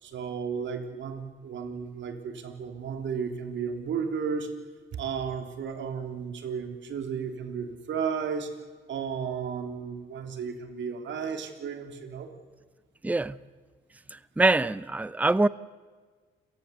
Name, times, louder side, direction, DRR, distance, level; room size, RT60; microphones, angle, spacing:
voice 1, 0.0-4.6 4.9-8.6 8.9-12.3, right 6 dB, 70° right, 3.3 m, -33 dB
voice 2, 13.0-13.4 14.4-15.5, right 2 dB, 5° right, 0.6 m, -23 dB
29.0 x 18.0 x 8.2 m
cardioid pair, 90°, 20 cm